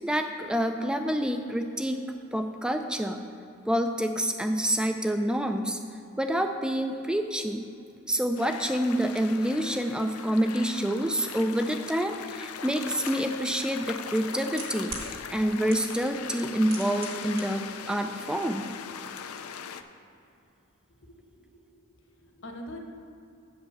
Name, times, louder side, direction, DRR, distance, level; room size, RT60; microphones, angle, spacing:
voice 1, 0.0-2.0 2.3-3.2 3.7-5.8 6.2-7.6 8.1-18.7, equal, 5° right, 6 dB, 0.3 m, -27 dB
sound 1, 8.4-19.8, left 7 dB, 90° left, 0.5 m, -40 dB
sound 2, 13.1-13.2 14.1-15.1 15.7-16.1 16.4-17.4 17.7-17.8, right 5 dB, 45° right, 1.8 m, -39 dB
voice 2, 21.0-21.8 22.2-22.8, left 1 dB, 60° left, 3 dB, 1.0 m, -44 dB
8.0 x 5.3 x 7.1 m, 2.6 s
head